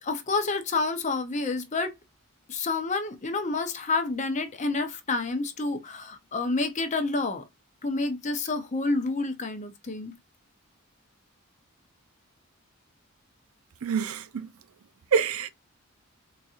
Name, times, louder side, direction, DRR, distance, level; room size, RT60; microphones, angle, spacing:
voice 1, 0.0-1.9 2.5-7.4 7.8-10.1, left 3 dB, 35° left, 0.6 m, -29 dB
voice 2, 13.8-14.5 15.1-15.5, right 6 dB, 80° right, 0.4 m, -26 dB
3.9 x 2.7 x 2.4 m
head